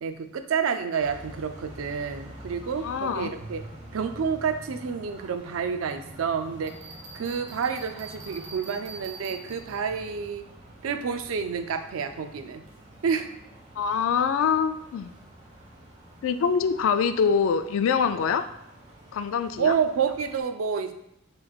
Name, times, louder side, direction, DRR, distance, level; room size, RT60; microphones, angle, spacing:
voice 1, 0.0-3.7 3.9-6.8 7.1-10.5 10.8-12.7 13.0-13.3 19.6-20.9, right 6 dB, 85° right, 8 dB, 0.4 m, -29 dB
sound 1, 1.0-20.4, right 1 dB, 35° right, 1.1 m, -47 dB
voice 2, 2.8-3.3 13.8-15.1 16.2-18.4 19.1-19.8, left 6 dB, 70° left, 10 dB, 0.3 m, -24 dB
Bell, 6.7-10.0, right 2 dB, 55° right, 1.1 m, -45 dB
5.9 x 3.1 x 2.4 m, 0.79 s
head